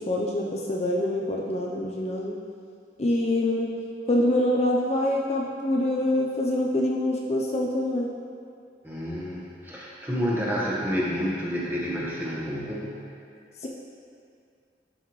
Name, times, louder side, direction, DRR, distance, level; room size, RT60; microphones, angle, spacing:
voice 1, 0.0-2.4 3.0-3.7 4.1-8.1 13.6-13.7, left 1 dB, 35° left, -2 dB, 0.5 m, -25 dB
voice 2, 8.8-13.0, equal, 10° right, -6 dB, 1.3 m, -29 dB
12.0 x 5.6 x 3.1 m, 2.4 s
head